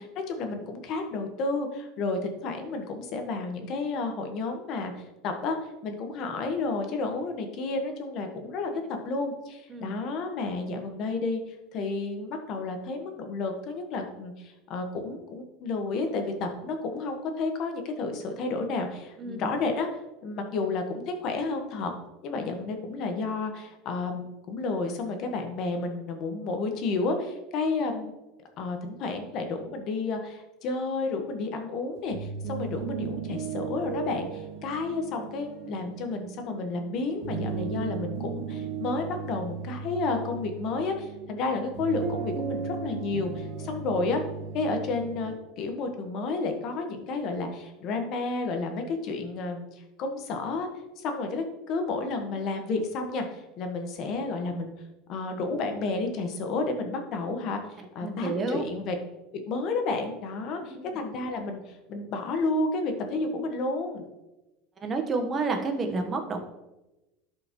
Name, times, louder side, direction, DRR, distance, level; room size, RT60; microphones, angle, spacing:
voice 1, 0.0-4.9 5.2-19.9 20.2-21.9 22.2-28.1 28.6-44.2 44.5-49.7 50.0-50.7 51.0-54.7 55.1-57.6 57.9-58.9 59.5-64.0, left 3 dB, 50° left, 5 dB, 1.3 m, -31 dB
voice 2, 19.2-19.5 58.0-58.6 60.6-61.0 64.8-66.4, right 3 dB, 25° right, 4 dB, 1.2 m, -30 dB
sound 1, 32.0-45.4, right 5 dB, 55° right, 1.1 m, -36 dB
11.5 x 5.2 x 3.0 m, 1.0 s
supercardioid pair, 130°, 0 cm